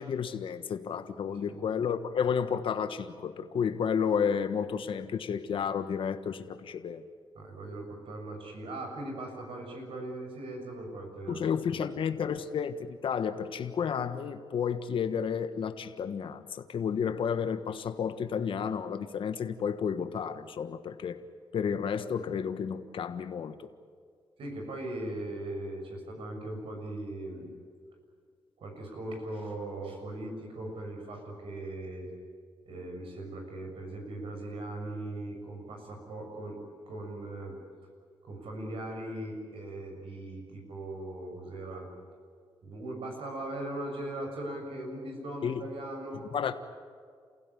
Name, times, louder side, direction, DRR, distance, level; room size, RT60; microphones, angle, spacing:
voice 1, 0.0-7.0 11.3-21.2 21.5-23.7 45.4-45.6 46.3-46.5, left 7 dB, 70° left, 9 dB, 1.4 m, -31 dB
voice 2, 1.3-1.6 7.4-11.4 11.7-12.0 24.4-27.5 28.6-32.1 32.7-36.6 36.9-37.6 38.2-41.9 42.6-46.3, right 1 dB, 80° right, 2 dB, 7.0 m, -39 dB
28.5 x 16.0 x 9.9 m, 2.1 s
cardioid pair, 90°, 9 cm